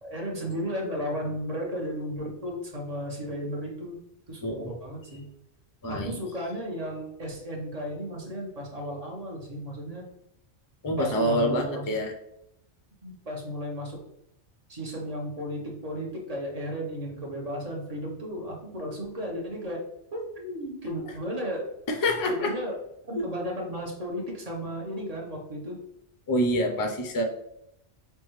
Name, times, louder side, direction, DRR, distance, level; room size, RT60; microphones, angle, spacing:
voice 1, 0.0-4.0 4.3-5.3 5.9-10.0 11.0-11.8 13.0-14.0 14.7-19.8 20.1-21.7 22.3-22.8 23.1-25.8, equal, 35° right, -1 dB, 1.0 m, -34 dB
voice 2, 4.4-4.7 5.8-6.2 10.8-12.1 21.9-22.5 23.2-23.3 26.3-27.2, equal, 30° left, 4 dB, 0.4 m, -26 dB
5.6 x 2.3 x 3.1 m, 0.79 s
omnidirectional pair, 1.2 m